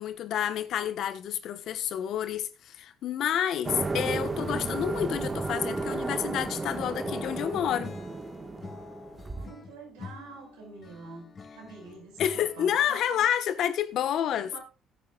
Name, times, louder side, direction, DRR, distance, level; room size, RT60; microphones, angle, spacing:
voice 1, 0.0-8.0 12.2-14.5, left 10 dB, 65° left, 1.3 m, -29 dB
sound 1, 3.6-9.5, right 3 dB, 30° right, 1.7 m, -33 dB
Acoustic guitar / Strum, 5.7-12.9, left 4 dB, 40° left, 2.7 m, -47 dB
voice 2, 9.3-11.3 11.5-13.3 14.4-14.6, right 3 dB, 85° right, 5.6 m, -45 dB
17.0 x 9.9 x 2.5 m
supercardioid pair, 65°, 0 cm